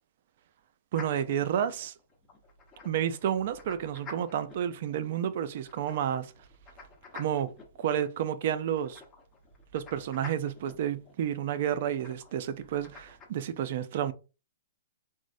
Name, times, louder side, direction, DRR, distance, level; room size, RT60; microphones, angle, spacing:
sound 1, 0.9-13.3, left 4 dB, 25° left, 0.8 m, -51 dB
voice 1, 0.9-1.9 2.8-6.3 7.1-9.0 9.7-14.1, right 9 dB, 55° right, 0.4 m, -30 dB
3.6 x 2.0 x 2.5 m
hypercardioid pair, 130°, 0 cm